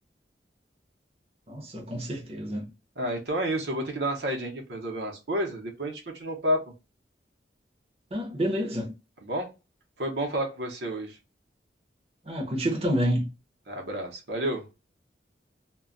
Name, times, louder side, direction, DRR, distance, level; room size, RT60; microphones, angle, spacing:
voice 1, 1.5-2.7 8.1-8.9 12.3-13.3, equal, 35° right, 0.7 m, -28 dB
voice 2, 3.0-6.7 9.2-9.5 10.0-11.2 13.7-14.7, equal, 70° right, 0.7 m, -30 dB
2.2 x 2.1 x 3.6 m
head